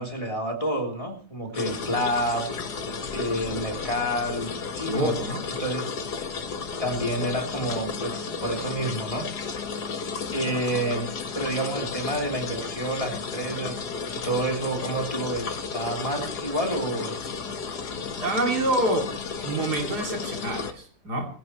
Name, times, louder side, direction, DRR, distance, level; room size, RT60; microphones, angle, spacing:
voice 1, 0.0-2.5 3.1-5.2 5.6-5.9 6.8-9.3 10.3-11.1 11.3-17.2, right 1 dB, 20° left, 3 dB, 3.2 m, -29 dB
sound 1, 1.5-20.7, left 5 dB, 85° left, 2.0 m, -33 dB
voice 2, 4.9-5.4 18.2-19.1 19.4-21.3, right 1 dB, 80° right, 2 dB, 3.4 m, -27 dB
19.5 x 16.5 x 3.0 m, 0.41 s
omnidirectional pair, 1.7 m